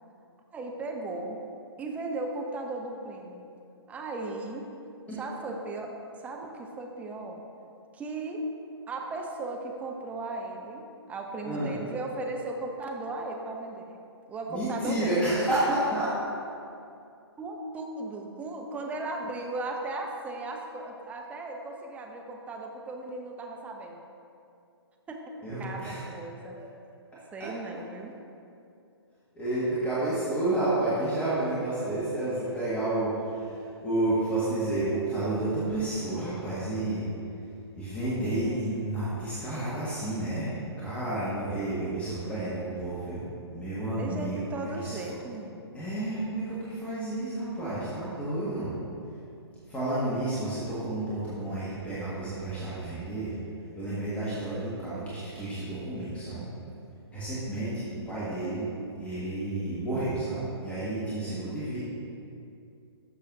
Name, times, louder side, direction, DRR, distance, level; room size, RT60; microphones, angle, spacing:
voice 1, 0.5-1.4 1.8-3.4 3.9-4.7 5.2-7.4 7.9-8.4 8.9-14.0 14.3-15.1 17.4-24.0 25.1-26.6 27.3-28.1 38.2-38.6 44.0-45.6, right 2 dB, 10° right, 1 dB, 0.6 m, -36 dB
voice 2, 11.4-11.7 14.5-16.1 25.4-26.0 27.4-27.5 29.4-37.1 37.7-40.5 40.8-45.0 45.7-48.7 49.7-53.3 53.7-56.5 57.1-58.7 59.0-61.8, right 2 dB, 10° left, -11 dB, 1.7 m, -30 dB
12.5 x 6.5 x 2.7 m, 2.6 s
figure-of-eight pair, 130°, 14 cm